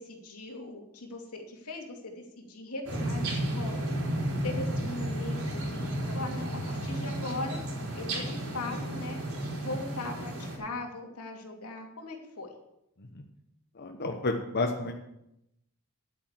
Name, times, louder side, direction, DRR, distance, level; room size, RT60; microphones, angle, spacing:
voice 1, 0.0-3.9 4.4-7.6 7.9-9.2 9.5-12.5, left 2 dB, 85° left, 2 dB, 2.7 m, -39 dB
sound 1, 2.8-10.6, right 1 dB, 70° right, 4.5 m, -33 dB
voice 2, 13.7-14.9, left 3 dB, 45° left, 3 dB, 1.0 m, -31 dB
11.0 x 8.8 x 7.4 m, 0.83 s
head